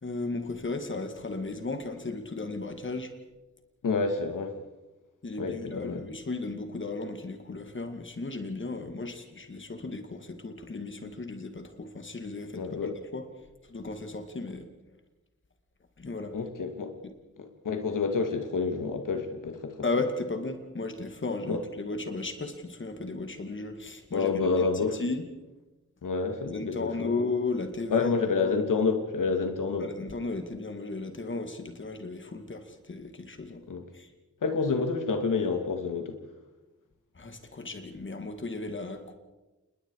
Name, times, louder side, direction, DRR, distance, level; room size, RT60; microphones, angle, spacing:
voice 1, 0.0-3.1 5.2-13.3 13.7-14.7 16.0-16.3 19.8-24.7 25.0-25.2 26.5-28.5 29.8-33.6 33.9-34.1 37.2-39.1, left 3 dB, 40° left, 7 dB, 2.4 m, -35 dB
voice 2, 3.8-4.5 5.4-6.0 12.6-12.9 16.3-16.9 17.6-19.8 21.5-21.6 24.1-25.0 26.0-27.1 27.9-29.9 33.7-33.8 34.4-36.2, left 4 dB, 85° left, 5 dB, 2.5 m, -28 dB
28.5 x 21.0 x 4.9 m, 1.1 s
wide cardioid pair, 110°, 31 cm